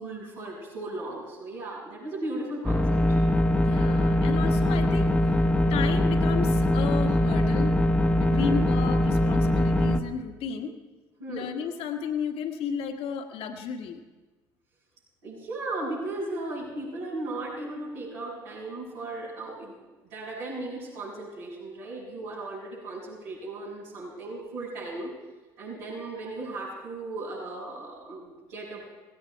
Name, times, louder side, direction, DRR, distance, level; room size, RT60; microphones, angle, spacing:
voice 1, 0.0-2.8 3.7-4.1 8.3-8.7 11.2-11.5 15.2-19.7 20.0-25.1 25.6-28.8, right 2 dB, 80° right, -11 dB, 6.5 m, -36 dB
sound 1, 2.6-10.0, left 1 dB, 10° left, 1.1 m, -22 dB
voice 2, 3.6-5.1 5.7-7.7 8.2-10.7 11.3-14.0, left 6 dB, 60° left, 6 dB, 1.5 m, -33 dB
17.5 x 16.0 x 4.6 m, 1.2 s
hypercardioid pair, 60°, 11 cm